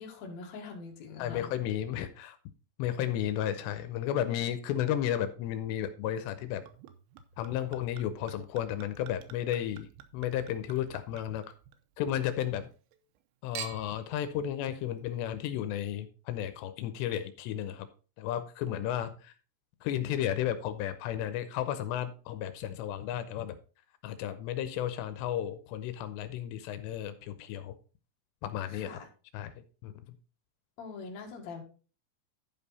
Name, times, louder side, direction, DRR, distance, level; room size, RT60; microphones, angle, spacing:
voice 1, 0.0-1.5 28.7-29.1 30.8-31.6, left 4 dB, 50° left, 0 dB, 2.4 m, -43 dB
voice 2, 1.2-2.4 2.8-6.6 7.4-11.4 12.0-12.7 13.4-17.9 18.2-19.3 19.8-23.6 24.0-27.8 28.4-28.9 29.3-29.5 29.8-29.9, left 11 dB, 85° left, 10 dB, 2.8 m, -33 dB
Chink clink / Liquid, 6.7-12.2 12.5-13.2 13.6-14.1 14.8-14.9, right 10 dB, 85° right, 3.1 m, -48 dB
11.0 x 5.5 x 4.1 m, 0.36 s
omnidirectional pair, 5.0 m